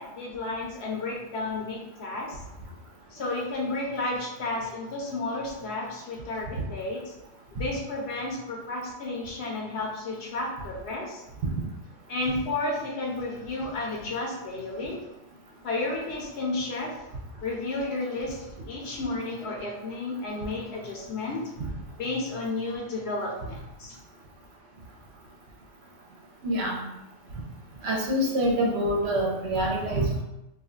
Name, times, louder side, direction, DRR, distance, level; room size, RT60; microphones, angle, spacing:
voice 1, 0.0-2.4 3.1-7.1 7.6-11.2 12.1-15.0 15.6-16.9 17.4-21.5 22.0-24.0, left 2 dB, 65° left, -1 dB, 0.8 m, -32 dB
voice 2, 26.4-26.8 27.8-30.2, equal, 65° right, -1 dB, 0.8 m, -25 dB
2.4 x 2.2 x 3.7 m, 0.92 s
omnidirectional pair, 1.3 m